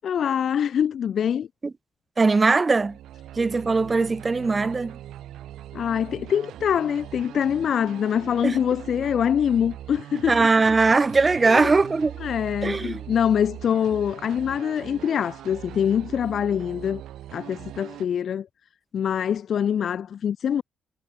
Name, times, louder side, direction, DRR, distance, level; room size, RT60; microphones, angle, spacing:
voice 1, 0.0-1.5 5.7-10.5 11.4-11.7 12.2-17.0 17.3-18.5 18.9-20.6, left 8 dB, 60° left, 0.5 m, -24 dB
voice 2, 2.2-3.0 3.4-5.0 8.4-8.6 10.3-12.1 12.6-13.0, right 3 dB, 25° right, 0.7 m, -20 dB
sound 1, 2.8-18.1, right 12 dB, 80° right, 1.7 m, -40 dB
cardioid pair, 90°, 0 cm